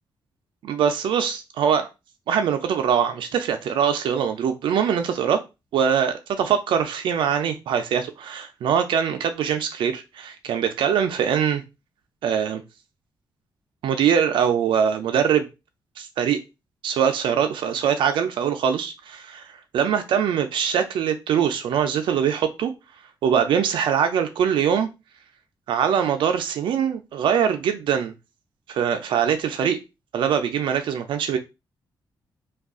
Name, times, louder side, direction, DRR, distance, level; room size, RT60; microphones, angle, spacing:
voice 1, 0.6-1.9 2.3-5.4 5.7-11.6 12.2-12.6 13.8-15.5 16.0-16.4 16.8-19.5 19.7-22.7 23.2-24.9 25.7-28.1 28.7-29.8 30.1-31.4, right 8 dB, 85° right, 0.4 m, -22 dB
2.3 x 2.2 x 3.5 m
cardioid pair, 120°, 8 cm